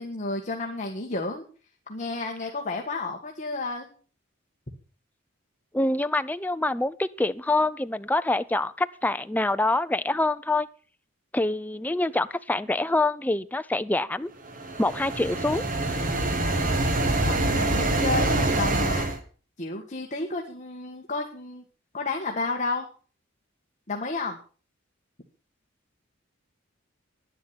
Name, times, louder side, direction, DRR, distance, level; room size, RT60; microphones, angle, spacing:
voice 1, 0.0-1.4 1.9-3.9 17.1-19.1 19.6-21.7 21.9-22.9 23.9-24.4, left 3 dB, 35° left, 1 dB, 1.7 m, -31 dB
voice 2, 5.7-10.7 11.3-14.3 14.8-15.6, left 2 dB, 10° left, 12 dB, 0.5 m, -25 dB
sound 1, 14.5-19.2, right 2 dB, 40° right, 1.6 m, -25 dB
11.0 x 10.5 x 5.9 m, 0.38 s
head